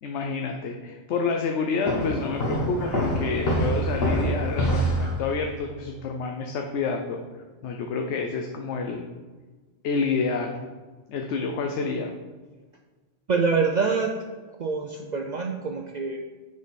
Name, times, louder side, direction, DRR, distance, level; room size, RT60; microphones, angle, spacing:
voice 1, 0.0-7.2 7.6-9.1 9.8-10.6 11.1-12.1, left 4 dB, 75° left, 3 dB, 0.9 m, -29 dB
sound 1, 1.9-5.5, equal, 55° left, 1.5 m, -25 dB
voice 2, 13.3-14.2 14.6-16.2, right 4 dB, 55° right, 2 dB, 0.5 m, -25 dB
6.6 x 5.1 x 4.2 m, 1.4 s
omnidirectional pair, 1.2 m